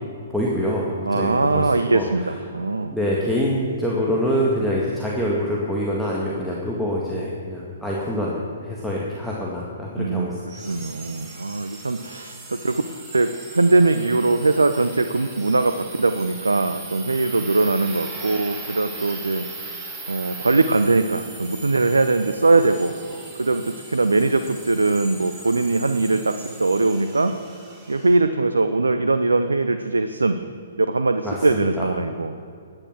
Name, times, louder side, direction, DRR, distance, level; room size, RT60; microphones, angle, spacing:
voice 1, 0.3-2.4 2.9-10.4 31.2-31.9, equal, ahead, -5 dB, 1.9 m, -25 dB
voice 2, 1.1-2.9 10.0-12.8 13.1-19.4 20.1-22.9 23.4-27.3 27.9-30.4 30.8-32.3, right 3 dB, 75° right, 10 dB, 0.7 m, -21 dB
sound 1, 10.5-28.2, right 3 dB, 15° right, 2.9 m, -39 dB
17.5 x 11.0 x 6.3 m, 2.5 s
figure-of-eight pair, 120°, 0 cm